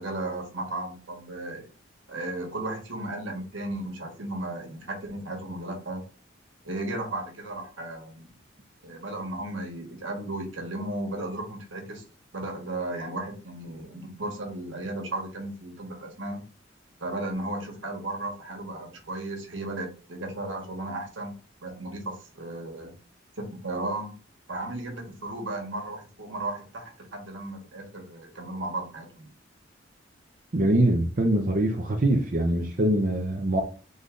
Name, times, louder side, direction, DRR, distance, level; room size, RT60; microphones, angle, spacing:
voice 1, 0.0-1.7 2.1-6.0 6.6-8.3 8.8-12.0 12.3-16.4 17.0-23.0 23.4-24.2 24.5-29.3, right 2 dB, 80° right, 1.5 m, -35 dB
voice 2, 30.5-33.6, right 1 dB, 45° right, 0.7 m, -23 dB
3.9 x 3.3 x 3.9 m
head